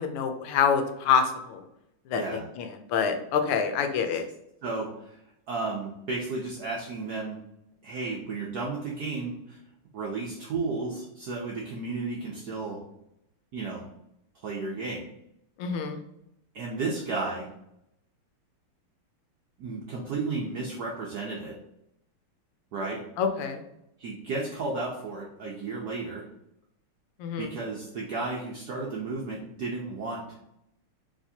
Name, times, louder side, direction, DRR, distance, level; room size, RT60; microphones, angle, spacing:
voice 1, 0.0-1.6 2.1-4.2 15.6-16.0 23.2-23.6 27.2-27.5, left 6 dB, 85° left, 6 dB, 1.5 m, -26 dB
voice 2, 2.1-2.5 4.6-5.2 5.5-7.4 7.8-9.6 9.9-12.8 13.5-13.9 14.4-15.0 16.5-17.5 19.6-21.6 22.7-23.0 24.0-26.3 27.4-30.2, right 3 dB, 75° right, -2 dB, 0.9 m, -33 dB
4.9 x 3.4 x 2.7 m, 0.79 s
omnidirectional pair, 2.4 m